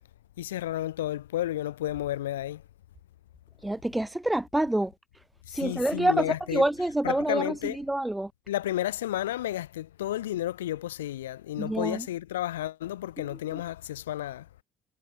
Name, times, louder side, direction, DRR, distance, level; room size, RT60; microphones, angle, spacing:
voice 1, 0.4-2.6 5.6-6.7 7.0-7.8 8.5-14.4, left 13 dB, 85° left, 0.8 m, -32 dB
voice 2, 3.6-4.9 5.5-8.3 11.6-12.1 13.5-13.6, right 1 dB, 10° right, 4.6 m, -27 dB
hypercardioid pair, 55°, 0 cm